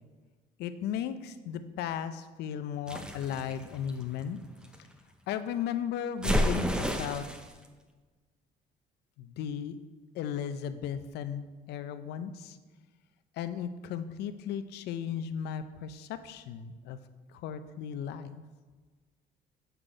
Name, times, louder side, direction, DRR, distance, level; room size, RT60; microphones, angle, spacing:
voice 1, 0.6-4.4 5.3-7.2 9.2-9.8 10.1-12.6 13.4-17.0 17.4-18.4, left 8 dB, 80° left, 11 dB, 0.5 m, -36 dB
sound 1, 2.9-4.8 6.2-7.5, equal, 5° right, 0.6 m, -31 dB
8.0 x 3.9 x 4.9 m, 1.3 s
cardioid pair, 110°, 17 cm